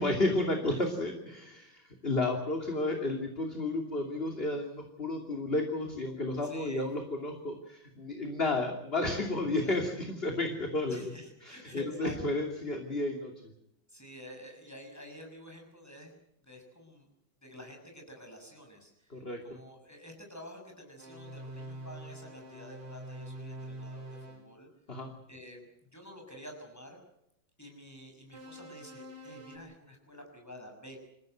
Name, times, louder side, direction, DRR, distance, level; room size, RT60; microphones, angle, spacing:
voice 1, 0.0-11.1 11.4-13.3 19.1-19.4 24.9-25.1, left 2 dB, 30° left, 3 dB, 2.9 m, -32 dB
voice 2, 6.4-6.9 9.5-9.8 10.9-12.4 13.9-16.1 16.4-17.1 17.4-24.7 25.3-27.0 27.6-31.0, equal, 10° left, 2 dB, 6.6 m, -49 dB
sound 1, 21.0-24.5 28.3-29.6, right 1 dB, 60° right, 5.9 m, -45 dB
28.0 x 16.0 x 7.9 m, 0.82 s
omnidirectional pair, 2.1 m